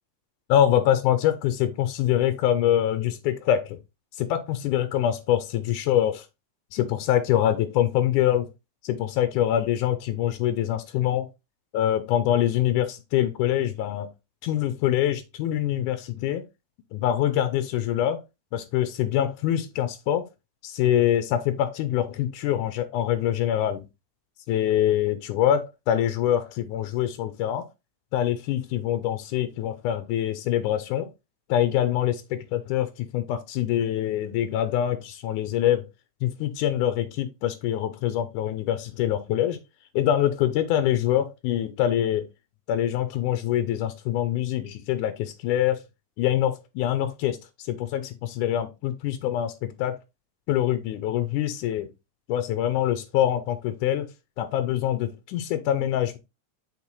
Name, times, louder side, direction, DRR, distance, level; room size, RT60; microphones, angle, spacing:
voice 1, 0.5-3.8 4.2-6.3 6.7-8.5 8.8-11.3 11.7-14.1 14.4-16.4 16.9-18.2 18.5-20.3 20.6-23.8 24.5-27.7 28.1-31.1 31.5-35.9 36.2-39.6 39.9-42.3 42.7-45.8 46.2-50.0 50.5-51.9 52.3-54.1 54.4-56.2, left 11 dB, 90° left, 2.3 m, -24 dB
7.1 x 4.4 x 3.1 m
omnidirectional pair, 3.5 m